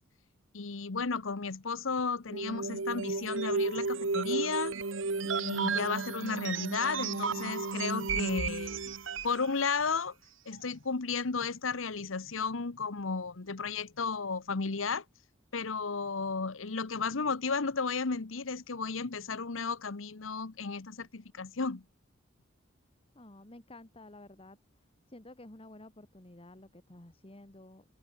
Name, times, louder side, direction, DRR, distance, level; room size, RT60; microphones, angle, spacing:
voice 1, 0.5-4.8 5.2-8.9 9.2-10.1 10.5-15.0 15.5-21.8, left 4 dB, 85° left, 1.0 m, -34 dB
sound 1, 2.3-9.4, right 4 dB, 75° right, 1.3 m, -33 dB
voice 2, 23.1-24.6 25.1-27.8, left 1 dB, 30° left, 1.7 m, -51 dB
head